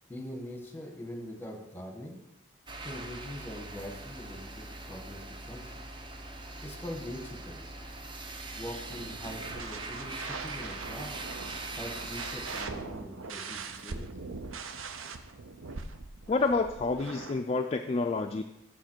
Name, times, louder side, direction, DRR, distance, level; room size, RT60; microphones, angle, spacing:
voice 1, 0.1-2.2 2.8-5.8 6.4-7.7 8.5-11.1 11.8-14.2, equal, 10° left, 2 dB, 1.2 m, -42 dB
sound 1, 2.7-12.7, right 2 dB, 25° right, 0.6 m, -41 dB
sound 2, 8.9-17.4, right 4 dB, 80° right, 0.6 m, -42 dB
voice 2, 16.3-18.4, left 3 dB, 30° left, 4 dB, 0.3 m, -28 dB
7.3 x 6.7 x 4.5 m, 0.85 s
head